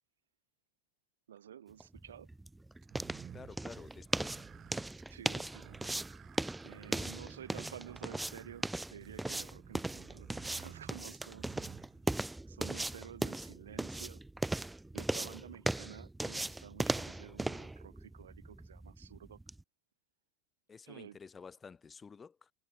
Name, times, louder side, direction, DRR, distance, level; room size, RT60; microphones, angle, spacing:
voice 1, 1.3-2.3 5.1-5.9 6.6-11.5 12.5-14.2 14.9-19.4 20.9-21.2, right 10 dB, 80° right, 2.7 m, -51 dB
sound 1, 1.8-19.6, right 2 dB, 10° right, 1.4 m, -38 dB
sound 2, 2.8-12.5, right 9 dB, 35° right, 5.5 m, -54 dB
voice 2, 3.3-4.5 20.7-22.5, left 5 dB, 20° left, 5.6 m, -51 dB
hypercardioid pair, 85°, 0 cm